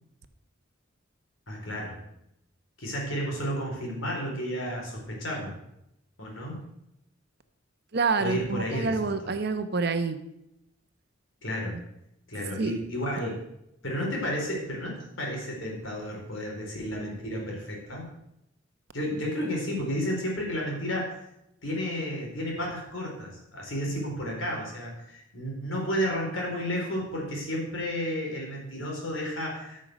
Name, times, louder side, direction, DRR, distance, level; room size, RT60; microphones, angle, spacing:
voice 1, 1.5-2.0 2.8-5.5 6.2-6.6 8.2-9.1 11.4-11.8 12.3-13.4 13.8-18.1 18.9-21.1 21.6-29.8, equal, 75° left, -1 dB, 4.2 m, -32 dB
voice 2, 7.9-10.2 11.7-11.8 12.3-12.8, right 4 dB, 55° right, 10 dB, 0.8 m, -28 dB
13.0 x 6.5 x 6.3 m, 0.83 s
head